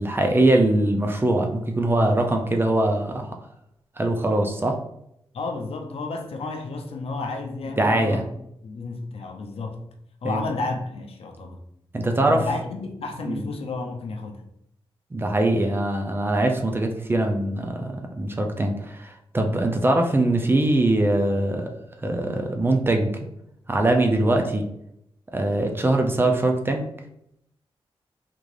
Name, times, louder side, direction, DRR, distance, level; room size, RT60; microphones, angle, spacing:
voice 1, 0.0-3.3 4.0-4.8 7.8-8.2 10.2-10.4 11.9-12.5 13.2-13.4 15.1-21.7 22.0-23.1 23.7-24.7 25.3-26.9, right 1 dB, 20° right, 0.4 m, -22 dB
voice 2, 5.3-8.3 8.6-9.9 10.2-11.6 12.3-14.5, left 3 dB, 75° left, 0.5 m, -32 dB
3.6 x 2.5 x 3.2 m
wide cardioid pair, 120°, 10 cm